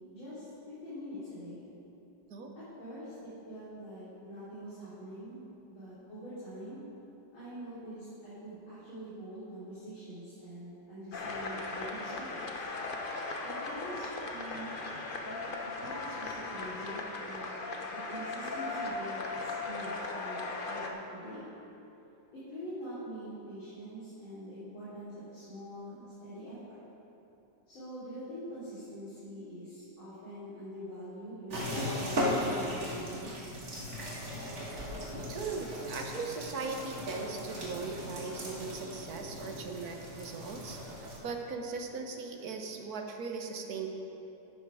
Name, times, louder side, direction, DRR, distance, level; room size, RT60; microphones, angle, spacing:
voice 1, 0.1-1.6 2.6-5.4 5.7-6.8 7.3-12.7 13.4-14.7 15.2-15.4 15.8-17.4 17.9-21.5 22.3-26.8 27.7-33.3, equal, 80° left, -13 dB, 4.1 m, -44 dB
sound 1, 11.1-20.9, left 3 dB, 55° left, 0.6 m, -38 dB
sound 2, 31.5-41.2, left 1 dB, 35° right, 1.9 m, -37 dB
voice 2, 35.3-43.9, right 4 dB, 55° right, 3 dB, 1.3 m, -39 dB
11.5 x 9.9 x 4.9 m, 2.9 s
omnidirectional pair, 2.2 m